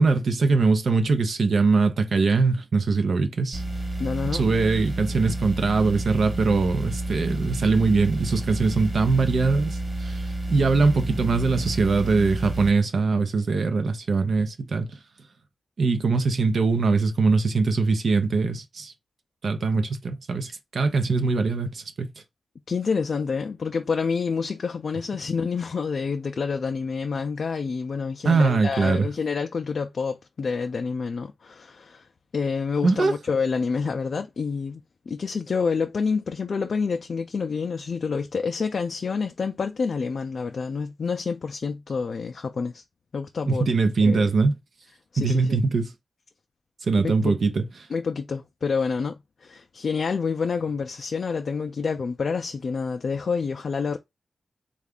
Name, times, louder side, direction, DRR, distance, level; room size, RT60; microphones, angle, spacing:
voice 1, 0.0-3.6 4.3-10.2 10.5-15.0 15.8-18.9 19.4-22.1 28.2-29.1 32.8-33.1 43.5-44.6 45.2-45.9 46.8-47.6, right 4 dB, 75° right, 0.6 m, -22 dB
sound 1, 3.5-12.7, right 1 dB, 30° right, 1.3 m, -30 dB
voice 2, 4.0-4.4 22.7-32.1 32.3-34.8 35.1-42.8 43.1-43.7 44.0-44.3 45.1-45.6 47.0-47.4 47.9-54.0, left 5 dB, 65° left, 0.4 m, -28 dB
3.3 x 2.4 x 3.5 m
cardioid pair, 70°, 0 cm